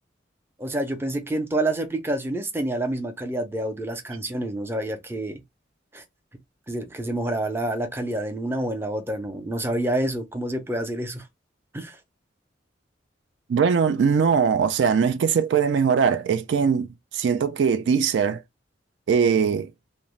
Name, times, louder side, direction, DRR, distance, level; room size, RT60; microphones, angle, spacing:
voice 1, 0.6-5.4 5.9-6.0 6.7-11.2 11.7-12.0, right 1 dB, 15° right, 0.5 m, -28 dB
voice 2, 13.5-16.9 17.1-18.4 19.1-19.7, right 6 dB, 70° right, 0.3 m, -21 dB
2.5 x 2.0 x 3.0 m
head